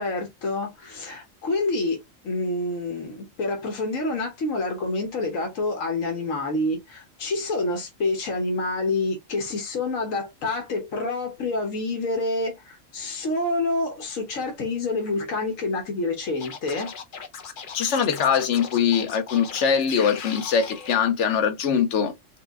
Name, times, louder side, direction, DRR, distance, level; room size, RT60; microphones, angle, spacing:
voice 1, 0.0-16.9, left 2 dB, 85° left, 1.4 m, -27 dB
Scratching (performance technique), 16.4-20.9, left 6 dB, 50° left, 0.7 m, -38 dB
voice 2, 17.7-22.1, left 7 dB, 70° left, 1.1 m, -22 dB
4.8 x 2.3 x 3.5 m
omnidirectional pair, 1.3 m